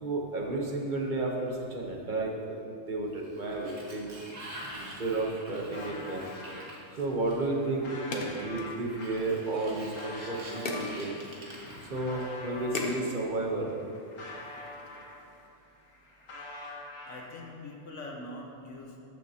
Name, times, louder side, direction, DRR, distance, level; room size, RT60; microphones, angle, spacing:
voice 1, 0.0-4.2 4.7-6.3 7.0-11.2 11.9-13.7, right 2 dB, 40° right, -1 dB, 1.2 m, -32 dB
Sliding door, 3.1-7.7 8.8-12.5, right 1 dB, 75° right, 1.8 m, -46 dB
sound 1, 5.0-6.6 7.2-13.0 13.5-15.4 15.7-17.5, left 2 dB, 85° left, 1.9 m, -45 dB
sound 2, 6.2-15.5, left 2 dB, 50° left, 1.0 m, -42 dB
voice 2, 17.1-19.0, left 2 dB, 70° left, 0 dB, 1.4 m, -43 dB
13.5 x 6.7 x 2.9 m, 2.6 s
omnidirectional pair, 1.3 m